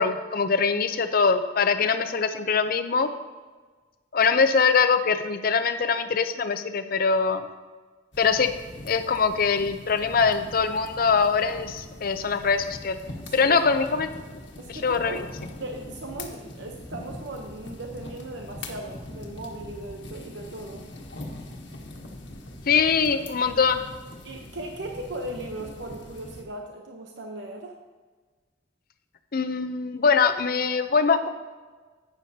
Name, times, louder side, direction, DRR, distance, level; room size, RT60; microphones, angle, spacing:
voice 1, 0.0-3.1 4.1-7.5 8.2-8.5 8.8-13.0 13.3-14.1 14.7-15.2 22.7-23.8 29.3-31.3, left 5 dB, 50° left, 8 dB, 0.6 m, -23 dB
sound 1, 8.1-26.4, left 1 dB, 75° left, 1.4 m, -42 dB
voice 2, 13.2-13.6 14.6-15.3 15.6-20.9 22.8-23.3 24.2-27.8, right 2 dB, 70° right, 3 dB, 0.8 m, -38 dB
11.5 x 8.9 x 2.8 m, 1.4 s
head